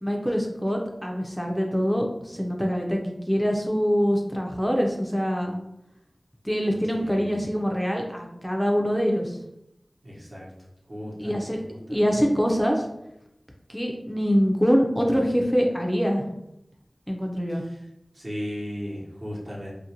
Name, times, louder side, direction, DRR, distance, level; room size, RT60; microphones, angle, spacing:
voice 1, 0.0-5.6 6.4-9.4 11.2-11.6 11.9-12.8 13.7-16.2 17.1-17.6, equal, 5° left, 1 dB, 0.4 m, -24 dB
voice 2, 6.9-7.4 10.0-10.5 10.9-11.5 11.9-12.0 18.1-19.7, equal, 55° right, -5 dB, 0.9 m, -35 dB
2.5 x 2.1 x 2.7 m, 0.82 s
wide cardioid pair, 45°, 0 cm